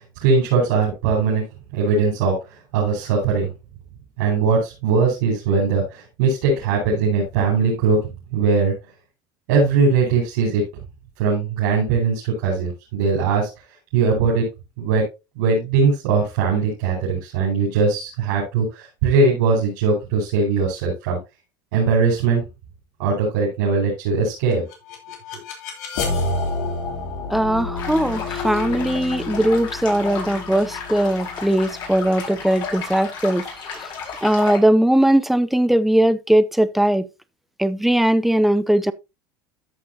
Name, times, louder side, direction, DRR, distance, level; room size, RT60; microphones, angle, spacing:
voice 1, 0.2-1.4 1.7-2.4 2.7-3.5 4.2-8.7 9.5-10.6 11.2-13.5 13.9-14.5 14.8-15.1 15.3-21.2 21.7-22.4 23.0-24.6, right 4 dB, 85° right, 4.9 m, -20 dB
sound 1, 24.5-33.4, left 3 dB, 90° left, 3.4 m, -30 dB
voice 2, 27.3-33.4 33.7-33.8 34.2-37.1 37.6-38.9, right 1 dB, ahead, 0.6 m, -19 dB
sound 2, 27.7-34.6, left 5 dB, 50° left, 4.9 m, -33 dB
13.5 x 6.0 x 2.8 m
supercardioid pair, 120°, 10 cm